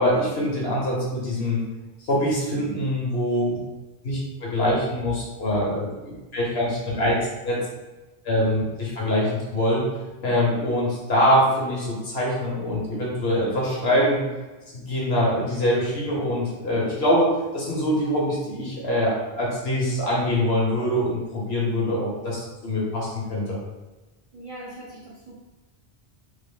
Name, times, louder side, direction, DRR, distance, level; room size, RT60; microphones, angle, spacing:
voice 1, 0.0-1.6 2.0-3.6 4.0-7.6 8.2-9.8 10.2-14.2 14.7-23.6, equal, 75° left, -4 dB, 1.3 m, -24 dB
voice 2, 15.3-15.7 24.3-25.4, right 1 dB, 40° right, -6 dB, 0.6 m, -41 dB
3.6 x 2.0 x 3.6 m, 1.1 s
omnidirectional pair, 1.1 m